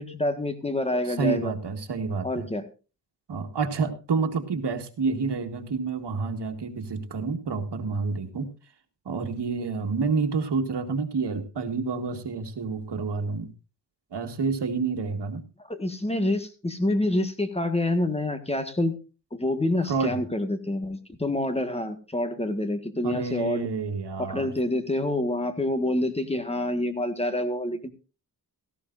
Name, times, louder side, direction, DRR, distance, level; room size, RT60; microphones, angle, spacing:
voice 1, 0.0-1.5 2.2-2.6 15.6-18.9 19.3-23.7 24.3-27.9, left 1 dB, 15° left, 8 dB, 1.6 m, -27 dB
voice 2, 1.2-2.5 3.3-8.5 9.0-13.5 14.1-15.4 19.9-20.2 23.0-24.5, right 4 dB, 80° right, 4 dB, 1.8 m, -29 dB
17.0 x 14.5 x 2.6 m, 0.31 s
wide cardioid pair, 130°, 40 cm